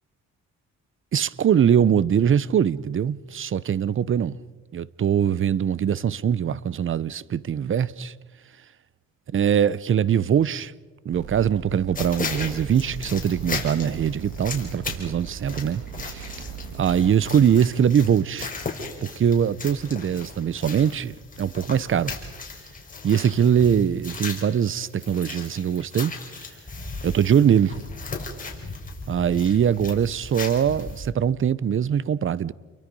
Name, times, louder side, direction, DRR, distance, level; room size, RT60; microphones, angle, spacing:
voice 1, 1.1-4.4 4.7-8.1 9.3-10.7 11.0-16.4 16.8-18.5 19.0-22.2 23.0-26.1 27.0-27.8 29.1-32.5, right 8 dB, 45° right, 0.8 m, -22 dB
sound 1, 11.1-17.1, right 8 dB, 80° right, 1.7 m, -38 dB
sound 2, 11.9-31.1, left 3 dB, 25° left, 5.3 m, -36 dB
29.5 x 23.5 x 5.4 m
cardioid pair, 90°, 30 cm